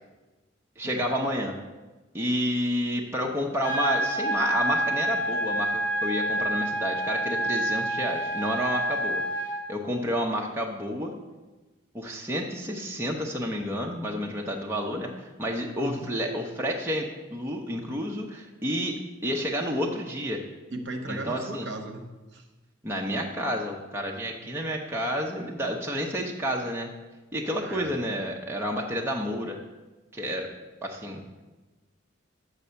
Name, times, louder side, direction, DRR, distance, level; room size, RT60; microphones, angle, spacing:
voice 1, 0.8-1.5 2.1-9.2 9.7-11.1 11.9-20.4 21.1-21.7 22.8-26.9 27.3-29.6 30.1-30.5 30.8-31.2, equal, 10° right, -1 dB, 0.6 m, -30 dB
sound 1, 3.6-9.6, right 1 dB, 10° left, 1.9 m, -28 dB
voice 2, 20.7-22.0 22.3-22.4 27.6-27.9 31.3-31.4, right 2 dB, 60° right, 4 dB, 0.9 m, -36 dB
6.3 x 5.5 x 6.8 m, 1.2 s
head